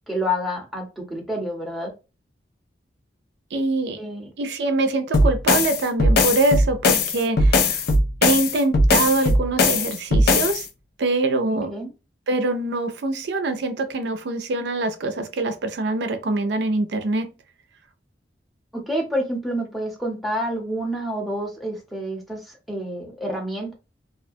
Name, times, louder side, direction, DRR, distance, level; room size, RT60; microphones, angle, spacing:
voice 1, 0.1-1.9 4.0-4.3 11.7-11.9 18.9-22.4 22.7-23.7, equal, ahead, 0.7 m, -28 dB
voice 2, 3.5-4.0 4.4-7.8 8.2-10.7 11.0-11.7 12.3-17.3, right 2 dB, 65° right, 0.4 m, -24 dB
sound 1, 5.1-10.6, left 2 dB, 60° left, 0.4 m, -19 dB
2.4 x 2.1 x 2.6 m
head